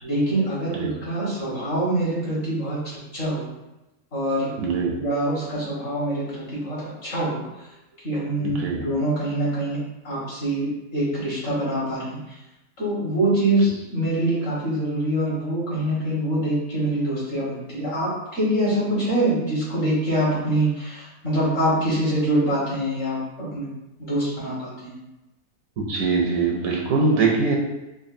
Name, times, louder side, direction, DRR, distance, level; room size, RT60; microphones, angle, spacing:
voice 1, 0.0-3.5 4.1-4.5 4.9-7.7 8.0-9.8 10.0-12.4 12.8-23.7 24.0-25.0, right 1 dB, 45° left, -8 dB, 1.7 m, -25 dB
voice 2, 4.6-4.9 8.4-8.8 25.8-27.6, right 4 dB, 70° right, -1 dB, 0.9 m, -22 dB
5.1 x 2.3 x 2.5 m, 0.97 s
omnidirectional pair, 1.6 m